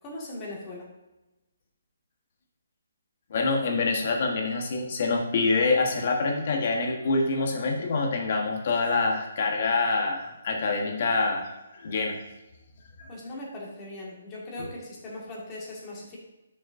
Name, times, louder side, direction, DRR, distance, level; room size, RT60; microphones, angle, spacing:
voice 1, 0.0-0.9 13.1-16.2, left 1 dB, 20° left, -4 dB, 2.0 m, -39 dB
voice 2, 3.3-12.2 13.0-13.1 14.6-14.7, left 3 dB, 45° left, 2 dB, 1.4 m, -26 dB
11.5 x 6.3 x 2.7 m, 1.0 s
hypercardioid pair, 170°, 0 cm